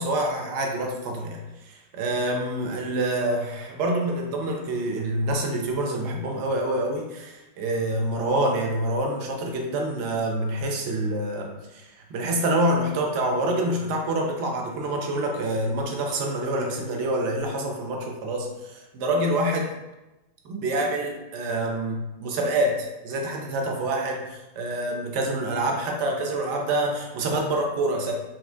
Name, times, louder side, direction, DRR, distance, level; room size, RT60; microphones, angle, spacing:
voice 1, 0.0-19.7 20.4-28.1, right 1 dB, 45° right, 1 dB, 0.5 m, -27 dB
2.8 x 2.1 x 2.5 m, 1.0 s
figure-of-eight pair, 90°, 0 cm